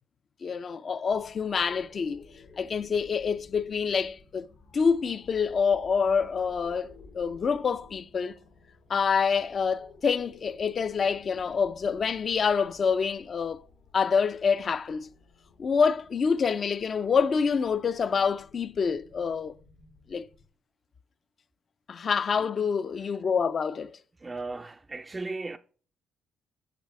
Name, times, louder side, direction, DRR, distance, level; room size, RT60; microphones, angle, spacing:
voice 1, 0.4-2.2 2.6-4.5 4.7-8.3 8.9-13.6 13.9-15.1 15.6-19.5 20.1-20.2 21.9-24.0, left 6 dB, 45° left, 0.4 m, -27 dB
sound 1, 1.1-20.5, left 4 dB, 80° left, 1.6 m, -55 dB
voice 2, 24.2-25.6, right 3 dB, 20° right, 0.3 m, -36 dB
8.9 x 6.6 x 3.2 m
cardioid pair, 90°, 0 cm